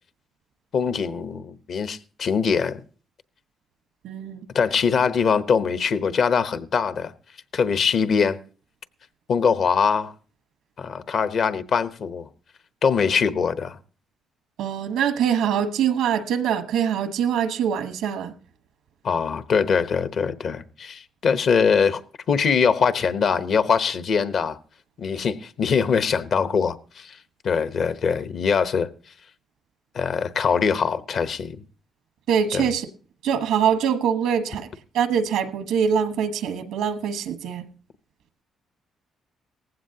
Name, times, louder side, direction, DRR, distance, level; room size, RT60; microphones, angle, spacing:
voice 1, 0.7-2.8 4.5-7.1 7.5-8.4 9.3-10.1 10.8-12.3 12.8-13.8 19.0-22.0 22.3-24.6 25.0-27.2 27.4-28.9 29.9-31.6 32.5-32.7, left 6 dB, 60° left, 0.9 m, -22 dB
voice 2, 4.0-4.5 14.6-18.3 32.3-32.9 33.2-34.7 34.9-37.6, right 8 dB, 85° right, 1.3 m, -23 dB
18.0 x 15.5 x 2.8 m
cardioid pair, 90°, 0 cm